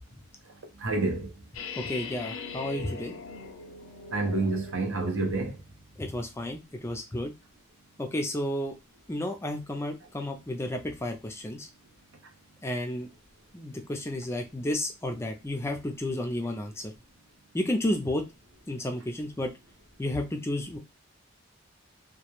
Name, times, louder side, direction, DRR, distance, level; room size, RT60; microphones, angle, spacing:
voice 1, 0.8-1.3 4.1-5.6, right 3 dB, 70° right, 0.6 m, -28 dB
sound 1, 1.5-5.6, left 5 dB, 75° left, 0.5 m, -41 dB
voice 2, 1.8-3.1 6.0-7.3 8.0-8.7 9.1-11.7 12.6-13.1 13.5-16.9 17.5-18.2 18.7-19.5 20.0-20.8, left 1 dB, 15° left, 0.3 m, -32 dB
2.2 x 2.0 x 2.9 m
head